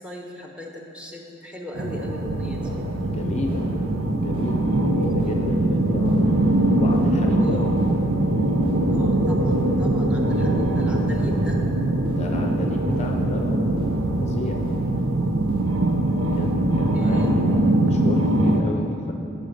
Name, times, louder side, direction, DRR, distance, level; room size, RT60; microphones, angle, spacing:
voice 1, 0.0-2.7 5.1-5.3 7.3-7.7 8.9-11.6 16.9-17.3, left 1 dB, 5° right, 0 dB, 1.0 m, -38 dB
sound 1, 1.8-18.6, right 1 dB, 80° right, 0.7 m, -22 dB
sound 2, 2.2-17.3, equal, 25° right, 0.9 m, -38 dB
voice 2, 3.0-3.7 4.1-6.3 6.8-7.9 12.1-14.7 16.4-19.1, left 1 dB, 35° left, 2 dB, 0.6 m, -31 dB
12.5 x 5.3 x 5.2 m, 2.8 s
head